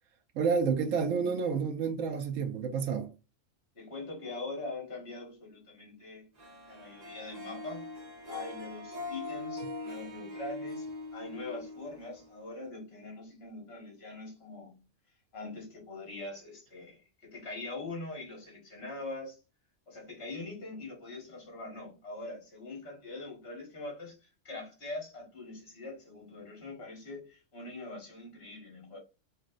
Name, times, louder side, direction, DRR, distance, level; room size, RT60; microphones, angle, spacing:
voice 1, 0.3-3.1, right 6 dB, 85° right, 1.0 m, -29 dB
voice 2, 3.7-6.3 6.6-7.9 8.3-14.8 15.3-19.4 19.9-29.0, left 2 dB, 50° left, 1.7 m, -43 dB
Harp, 6.4-12.7, left 2 dB, 35° right, 0.9 m, -42 dB
5.6 x 2.5 x 2.4 m
omnidirectional pair, 1.3 m